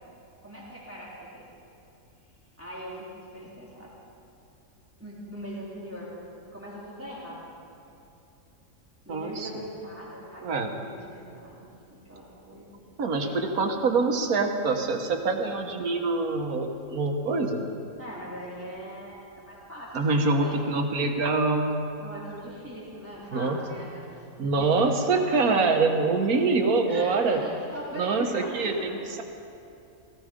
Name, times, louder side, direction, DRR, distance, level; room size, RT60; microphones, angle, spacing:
voice 1, 0.4-1.4 2.6-3.9 5.0-6.1 6.5-7.5 9.0-12.6 13.2-13.4 18.0-20.6 22.0-24.8 25.1-25.2 26.9-28.8, equal, 10° right, -7 dB, 3.5 m, -41 dB
voice 2, 9.1-9.5 10.4-10.7 13.0-17.6 19.9-21.7 23.3-23.6 24.4-27.4 27.9-29.2, right 3 dB, 85° right, 4 dB, 1.7 m, -25 dB
17.5 x 15.0 x 5.2 m, 2.8 s
omnidirectional pair, 1.5 m